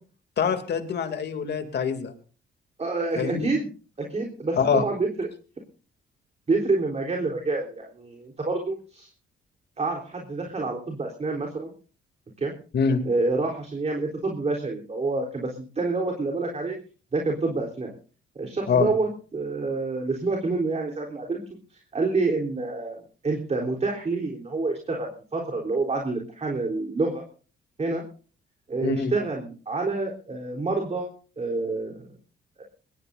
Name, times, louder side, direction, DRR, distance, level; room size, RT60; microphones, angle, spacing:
voice 1, 0.4-2.1 3.2-3.5 4.6-4.8 12.7-13.0 18.7-18.9 28.8-29.1, left 6 dB, 60° left, 7 dB, 2.8 m, -24 dB
voice 2, 2.8-3.7 4.0-5.3 6.5-9.1 9.8-11.7 12.4-12.5 13.0-16.8 17.1-17.9 18.4-23.0 23.2-27.2 27.8-28.0 28.7-32.1 32.6-32.7, right 3 dB, 35° right, 1 dB, 3.7 m, -28 dB
21.5 x 20.0 x 2.6 m, 0.39 s
cardioid pair, 90°, 20 cm